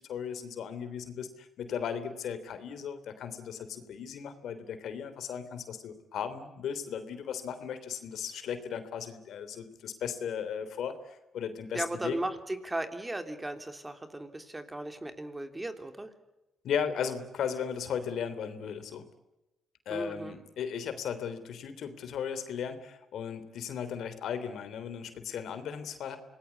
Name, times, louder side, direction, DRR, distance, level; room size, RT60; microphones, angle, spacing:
voice 1, 0.0-12.2 16.6-19.0 19.8-26.2, left 7 dB, 70° left, 11 dB, 3.3 m, -36 dB
voice 2, 11.7-16.1 19.9-20.4, right 1 dB, 15° right, 7 dB, 3.1 m, -36 dB
27.0 x 19.5 x 8.5 m, 0.96 s
cardioid pair, 90°, 0 cm